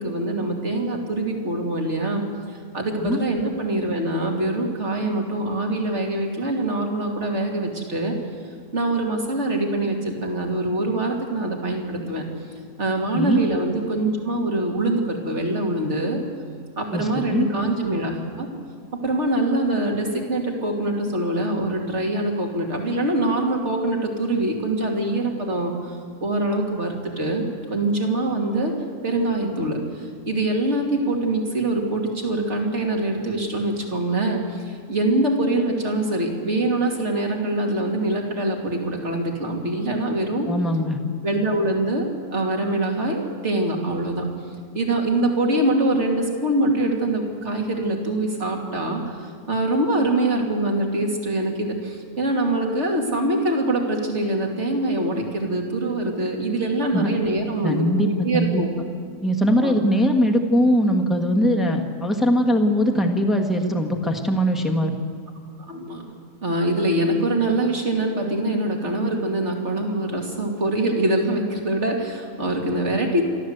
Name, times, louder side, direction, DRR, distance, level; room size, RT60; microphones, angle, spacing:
voice 1, 0.0-2.2 2.7-8.1 8.7-12.2 12.8-16.2 16.8-18.5 18.9-28.7 29.0-40.5 41.2-44.3 44.7-58.7 59.6-59.8 65.6-66.1 66.4-73.2, right 1 dB, 50° right, 1 dB, 2.9 m, -24 dB
voice 2, 16.9-17.5 40.5-41.0 56.9-57.1 57.6-58.6 59.2-64.9, equal, ahead, 2 dB, 1.5 m, -21 dB
28.5 x 13.0 x 8.0 m, 2.2 s
omnidirectional pair, 1.6 m